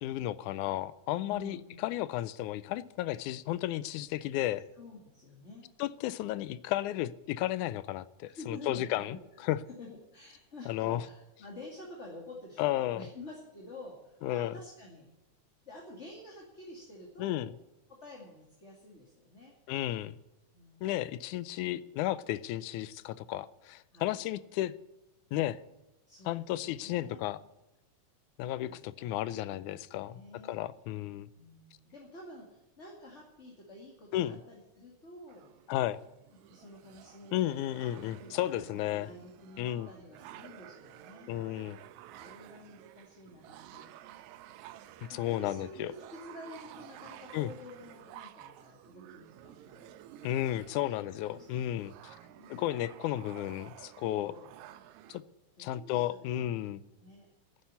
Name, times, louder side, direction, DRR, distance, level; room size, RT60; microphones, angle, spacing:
voice 1, 0.0-4.7 5.8-9.2 9.4-9.6 10.7-11.0 12.6-13.0 14.2-14.5 17.2-17.5 19.7-20.2 20.8-24.7 25.3-25.6 26.3-27.4 28.4-31.3 34.1-34.4 35.7-36.0 37.3-39.1 39.6-39.9 41.3-41.8 45.0-45.9 47.3-47.5 50.2-52.2 52.5-54.3 55.1-55.2 55.6-56.8, left 13 dB, 85° left, 17 dB, 2.1 m, -33 dB
voice 2, 1.2-1.8 4.8-5.7 8.4-9.4 9.8-15.1 15.6-17.5 17.9-19.6 20.5-21.0 23.9-24.2 26.1-27.3 28.6-30.6 31.3-35.5 36.5-37.6 38.0-41.3 42.2-43.9 45.1-50.0 50.8-51.0 51.3-53.0 54.0-54.5 55.6-57.3, left 1 dB, 25° left, -1 dB, 2.3 m, -50 dB
sound 1, 35.3-55.2, right 13 dB, 80° right, 2.0 m, -52 dB
10.5 x 10.0 x 9.5 m, 0.99 s
omnidirectional pair, 3.4 m